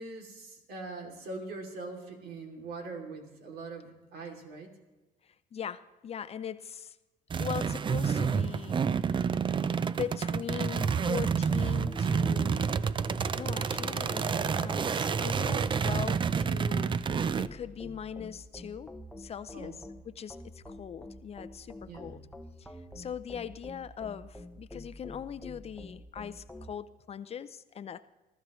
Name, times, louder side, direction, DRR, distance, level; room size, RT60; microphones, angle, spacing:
voice 1, 0.0-4.7 13.2-13.3 13.7-13.8 19.5-19.8 21.9-22.2, right 3 dB, 65° right, 3 dB, 2.8 m, -42 dB
voice 2, 5.2-7.0 7.4-9.1 9.9-12.8 13.4-17.0 17.4-19.8 20.1-22.2 22.6-28.0, left 8 dB, 35° left, 14 dB, 0.5 m, -40 dB
sound 1, 7.3-17.5, right 6 dB, 30° right, 0.4 m, -29 dB
sound 2, 11.5-26.7, left 1 dB, 5° left, 0.8 m, -48 dB
21.5 x 13.5 x 3.1 m, 1.1 s
cardioid pair, 110°, 17 cm